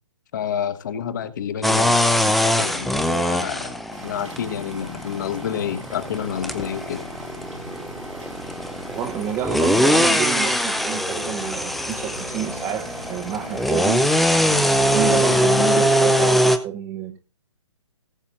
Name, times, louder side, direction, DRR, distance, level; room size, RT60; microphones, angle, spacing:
voice 1, 0.3-3.8 4.0-7.1, left 8 dB, 40° left, 1.2 m, -29 dB
sound 1, 1.6-16.6, equal, ahead, 0.5 m, -22 dB
sound 2, 3.9-16.3, right 1 dB, 85° right, 5.5 m, -37 dB
voice 2, 8.9-14.1 14.8-17.2, right 9 dB, 15° right, 0.9 m, -28 dB
18.5 x 8.2 x 2.6 m
figure-of-eight pair, 130°, 16 cm